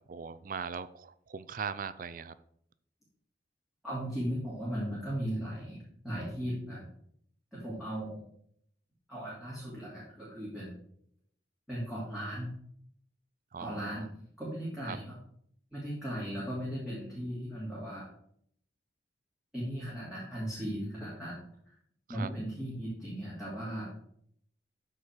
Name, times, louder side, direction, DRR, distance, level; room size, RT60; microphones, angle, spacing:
voice 1, 0.1-2.3 13.5-14.1 14.9-15.0 22.1-22.3, right 6 dB, 45° right, 14 dB, 0.4 m, -40 dB
voice 2, 3.8-5.8 6.0-6.9 7.5-8.3 9.1-10.7 11.7-12.5 13.6-14.1 14.4-15.1 15.7-18.1 19.5-21.4 22.1-23.8, equal, ahead, -9 dB, 2.9 m, -37 dB
13.0 x 4.4 x 4.6 m, 0.68 s
head